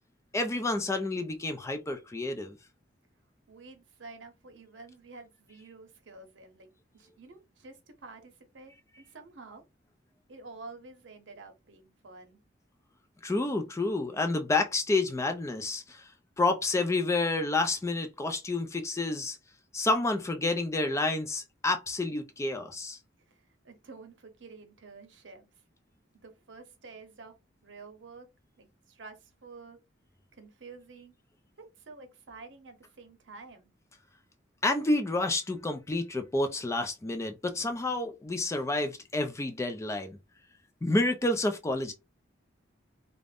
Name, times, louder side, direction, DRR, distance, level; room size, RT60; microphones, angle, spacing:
voice 1, 0.3-2.6 13.2-16.1 16.4-19.4 19.7-23.0 34.6-40.2 40.8-41.9, left 2 dB, 15° left, 0.3 m, -29 dB
voice 2, 3.5-6.7 6.9-9.6 10.3-12.4 23.3-23.4 23.6-25.5 26.2-27.3 27.6-28.3 28.6-29.8 30.3-31.1 31.8-33.7, right 3 dB, 80° right, 0.7 m, -49 dB
2.5 x 2.0 x 3.4 m
head